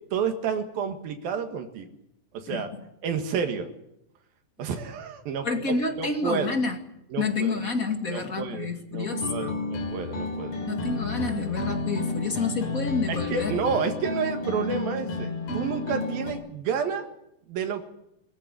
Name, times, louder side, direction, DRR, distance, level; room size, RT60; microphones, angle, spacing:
voice 1, 0.1-1.9 2.3-2.7 3.0-3.7 4.6-6.5 7.1-7.6 8.1-10.7 13.1-17.1 17.5-17.9, right 6 dB, 80° right, 5 dB, 3.5 m, -30 dB
voice 2, 2.5-2.8 5.4-6.8 7.2-9.6 10.7-13.6, left 4 dB, 30° left, 5 dB, 1.8 m, -29 dB
sound 1, 9.1-16.3, left 3 dB, 80° left, 5.6 m, -31 dB
23.0 x 14.5 x 9.6 m, 0.82 s
omnidirectional pair, 4.1 m